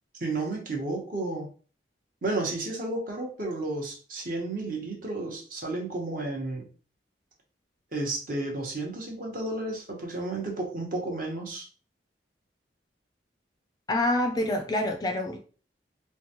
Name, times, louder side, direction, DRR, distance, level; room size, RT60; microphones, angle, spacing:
voice 1, 0.2-1.5 2.2-6.6 7.9-11.7, right 2 dB, 50° right, 0 dB, 1.0 m, -32 dB
voice 2, 13.9-15.4, left 1 dB, 20° left, 5 dB, 0.4 m, -26 dB
3.7 x 2.3 x 2.9 m, 0.40 s
head